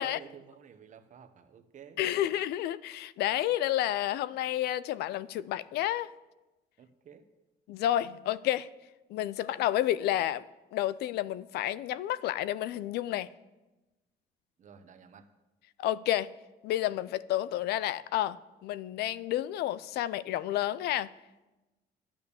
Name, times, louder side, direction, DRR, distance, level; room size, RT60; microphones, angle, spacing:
voice 1, 0.0-2.3 6.8-7.3 14.6-15.3, right 7 dB, 50° right, 10 dB, 1.1 m, -51 dB
voice 2, 2.0-6.1 7.7-8.7 9.1-13.3 15.8-16.3 16.6-18.4 18.6-21.1, left 13 dB, 75° left, 18 dB, 0.5 m, -30 dB
10.5 x 8.9 x 7.0 m, 1.1 s
cardioid pair, 110°, 17 cm